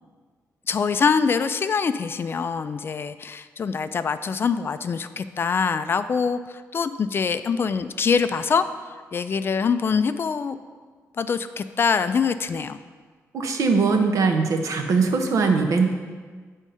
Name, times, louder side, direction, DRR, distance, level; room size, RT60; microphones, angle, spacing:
voice 1, 0.7-10.6 11.2-12.8, left 5 dB, 40° left, 11 dB, 0.3 m, -24 dB
voice 2, 13.3-15.9, right 4 dB, 65° right, 5 dB, 0.9 m, -21 dB
9.7 x 3.6 x 5.5 m, 1.5 s
cardioid pair, 115°, 6 cm